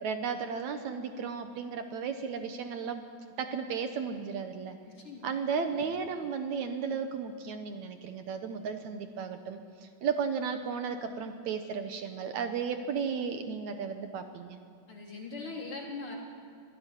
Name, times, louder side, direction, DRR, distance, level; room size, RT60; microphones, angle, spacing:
voice 1, 0.0-3.0 3.4-4.8 5.2-9.6 10.0-14.6, right 6 dB, 70° right, 7 dB, 2.3 m, -34 dB
voice 2, 4.8-5.3 14.9-16.2, left 3 dB, 40° left, -1 dB, 4.4 m, -41 dB
25.5 x 16.0 x 10.0 m, 2.2 s
omnidirectional pair, 3.7 m